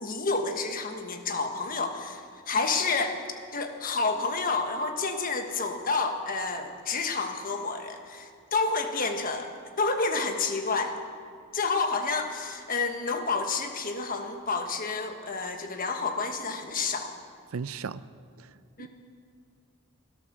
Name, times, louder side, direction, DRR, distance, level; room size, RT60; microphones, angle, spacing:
voice 1, 0.0-3.2 3.5-9.5 9.8-11.0 11.5-17.1 18.8-18.9, left 4 dB, 40° left, 5 dB, 1.3 m, -29 dB
voice 2, 17.5-18.0 18.4-18.5 18.8-18.9, right 5 dB, 80° right, 15 dB, 0.5 m, -35 dB
17.0 x 11.5 x 6.7 m, 2.2 s
head